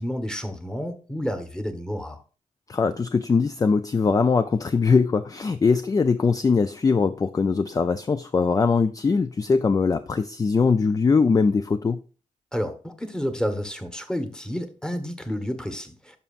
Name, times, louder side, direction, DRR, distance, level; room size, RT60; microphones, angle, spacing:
voice 1, 0.0-2.2 12.5-16.2, equal, 5° left, 1.2 m, -30 dB
voice 2, 2.7-12.0, left 4 dB, 25° left, 0.4 m, -21 dB
11.0 x 5.9 x 2.5 m
cardioid pair, 95°, 13 cm